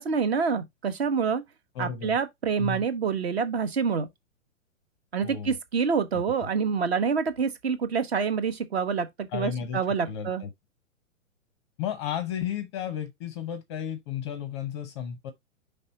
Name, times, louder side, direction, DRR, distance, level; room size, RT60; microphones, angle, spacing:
voice 1, 0.0-1.4 1.8-4.1 5.1-10.4, right 6 dB, 50° right, 1.1 m, -27 dB
voice 2, 1.7-2.2 2.6-2.8 5.2-5.6 9.3-10.5 11.8-15.3, left 9 dB, 20° left, 0.6 m, -33 dB
5.4 x 3.4 x 5.2 m
figure-of-eight pair, 115°, 40 cm